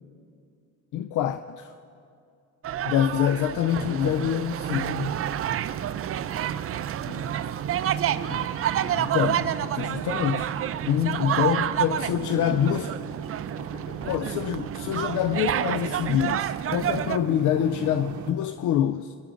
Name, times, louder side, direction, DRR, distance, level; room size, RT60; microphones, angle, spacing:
voice 1, 0.9-1.7 2.8-5.2 8.3-8.4 8.9-10.6 10.8-12.9 14.0-19.2, left 10 dB, 80° left, 0.5 m, -26 dB
sound 1, 2.6-17.2, right 10 dB, 50° right, 0.5 m, -29 dB
sound 2, 4.6-18.3, right 8 dB, 70° right, 0.8 m, -36 dB
voice 2, 6.9-7.3 7.7-8.3 11.9-13.0 13.5-14.3, left 2 dB, 50° left, 3.4 m, -43 dB
22.0 x 11.0 x 3.9 m
cardioid pair, 90°, 30 cm